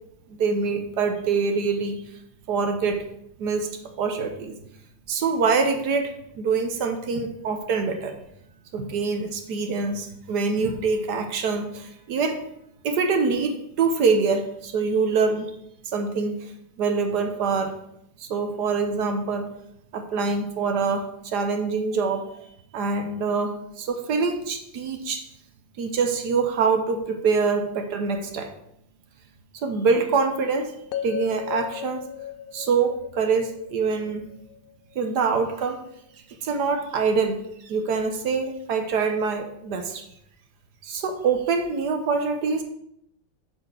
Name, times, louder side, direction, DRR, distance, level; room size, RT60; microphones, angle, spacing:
voice 1, 0.4-2.0 2.5-3.0 3.4-3.7 4.0-4.5 5.1-8.1 8.7-12.4 12.8-15.5 15.9-16.5 16.8-17.7 18.2-19.5 19.9-22.2 22.7-25.2 25.8-28.5 29.5-30.7 31.0-32.0 32.5-34.2 34.9-35.8 36.4-37.4 37.6-40.0 40.8-42.6, right 5 dB, 65° right, 6 dB, 1.4 m, -25 dB
sound 1, 30.9-35.0, left 9 dB, 80° left, 0.7 m, -36 dB
7.7 x 4.6 x 6.0 m, 0.75 s
omnidirectional pair, 2.0 m